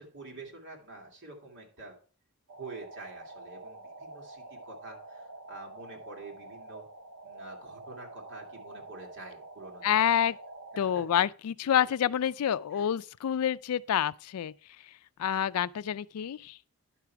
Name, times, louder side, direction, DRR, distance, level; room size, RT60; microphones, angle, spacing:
voice 1, 0.0-2.0 2.6-6.9 7.2-10.1 10.7-11.0 11.8-11.9 12.7-12.9 15.3-15.5, right 3 dB, 55° right, 2.7 m, -47 dB
sound 1, 2.5-11.3, right 2 dB, 90° right, 0.9 m, -47 dB
voice 2, 9.8-10.4 10.8-14.5 15.2-16.6, left 9 dB, 80° left, 0.4 m, -28 dB
10.5 x 6.0 x 4.6 m
head